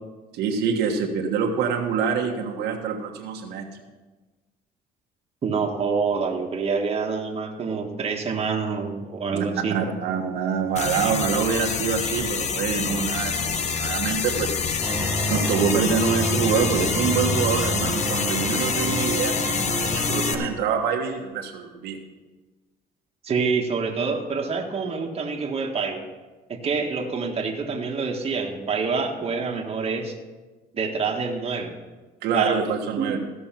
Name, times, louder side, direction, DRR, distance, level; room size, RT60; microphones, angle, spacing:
voice 1, 0.3-3.8 9.3-14.5 15.3-22.0 32.2-33.2, right 6 dB, 80° right, 0 dB, 1.4 m, -25 dB
voice 2, 5.4-9.8 23.2-26.0 26.5-30.1 30.7-31.8 32.3-33.1, right 5 dB, 35° right, 1 dB, 1.5 m, -27 dB
sound 1, 10.8-20.4, left 6 dB, 40° left, 0.9 m, -27 dB
sound 2, 14.8-20.5, equal, 10° right, 1.2 m, -29 dB
15.0 x 6.2 x 5.9 m, 1.3 s
cardioid pair, 110°, 17 cm